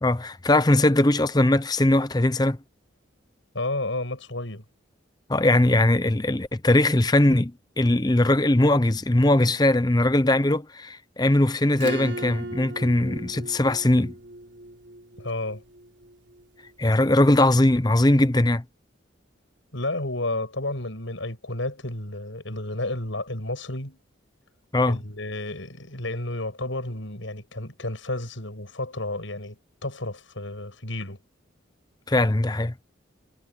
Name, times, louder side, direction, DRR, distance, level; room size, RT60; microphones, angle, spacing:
voice 1, 0.0-2.6 5.3-14.1 16.8-18.6 24.7-25.0 32.1-32.7, left 1 dB, 20° left, 0.7 m, -20 dB
voice 2, 3.5-4.6 15.2-15.6 19.7-24.0 24.9-31.2, left 2 dB, 75° left, 6.4 m, -31 dB
Acoustic guitar / Strum, 11.7-16.7, right 2 dB, 60° right, 3.9 m, -38 dB
head